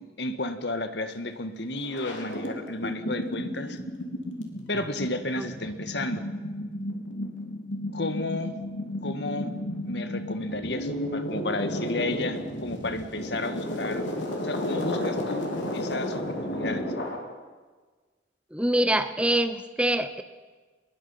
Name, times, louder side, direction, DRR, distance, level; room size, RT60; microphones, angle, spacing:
voice 1, 0.0-3.8 4.7-6.2 7.9-8.6 9.0-9.5 9.8-14.0 14.4-16.9, left 2 dB, 65° left, 8 dB, 1.7 m, -32 dB
sound 1, 1.4-1.5 1.7-17.2, left 1 dB, 85° left, 3.6 m, -32 dB
voice 2, 18.5-20.2, right 1 dB, 5° right, 10 dB, 0.9 m, -25 dB
24.5 x 21.5 x 5.8 m, 1.4 s
head